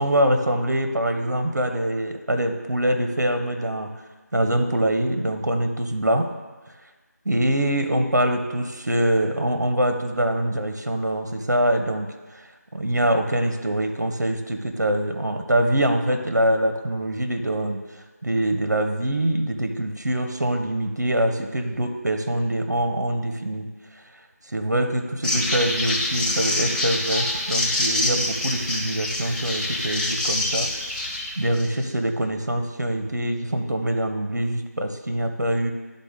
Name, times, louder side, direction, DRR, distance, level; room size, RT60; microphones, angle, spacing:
voice 1, 0.0-3.9 4.3-6.3 7.2-12.5 12.7-17.8 18.2-23.7 24.5-30.7 31.4-35.7, right 1 dB, 80° right, 6 dB, 0.9 m, -24 dB
sound 1, 25.2-31.8, left 1 dB, 30° left, 1.6 m, -26 dB
11.0 x 3.9 x 3.7 m, 1.3 s
figure-of-eight pair, 170°, 9 cm